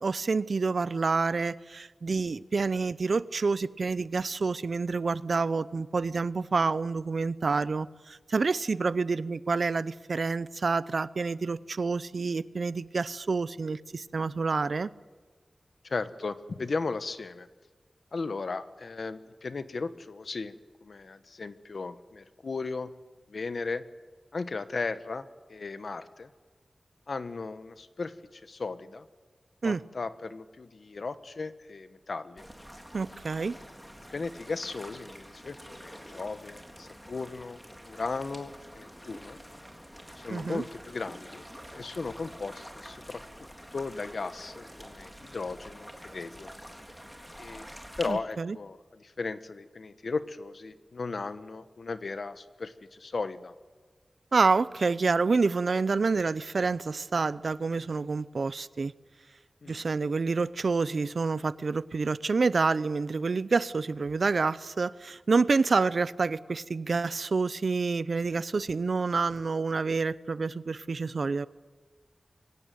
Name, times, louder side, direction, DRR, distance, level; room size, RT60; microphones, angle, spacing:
voice 1, 0.0-14.9 29.6-29.8 32.9-33.6 40.3-40.6 48.1-48.6 54.3-58.9 59.7-71.5, right 4 dB, 70° right, 0.7 m, -28 dB
voice 2, 15.8-17.5 18.1-20.5 20.8-22.9 23.3-23.8 24.3-26.3 27.1-29.1 29.6-32.4 34.1-37.6 37.9-39.4 40.2-41.4 41.7-46.5 47.4-47.6 48.0-53.5 59.6-59.9, left 4 dB, 75° left, 1.2 m, -36 dB
sound 1, 32.4-48.1, equal, 5° left, 3.6 m, -47 dB
24.0 x 17.0 x 9.3 m
wide cardioid pair, 70°, 0 cm